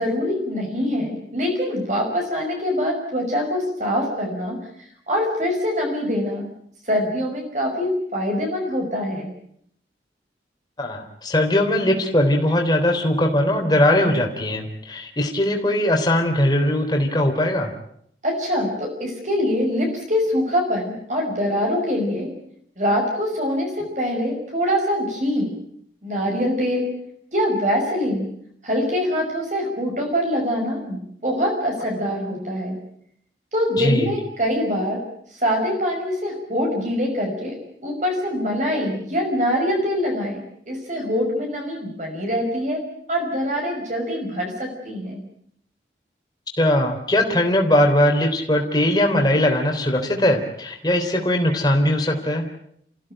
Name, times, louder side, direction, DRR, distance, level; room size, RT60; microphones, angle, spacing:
voice 1, 0.0-4.6 5.1-6.4 6.9-9.3 18.2-22.3 22.8-25.5 26.0-26.9 27.3-28.3 28.6-32.8 33.5-35.0 35.3-37.6 37.8-40.4 40.7-42.8 43.1-45.2, equal, 40° right, 1 dB, 5.7 m, -24 dB
voice 2, 10.8-17.7 33.8-34.1 46.6-52.5, left 1 dB, 25° left, 2 dB, 3.5 m, -20 dB
30.0 x 15.5 x 9.0 m, 0.70 s
head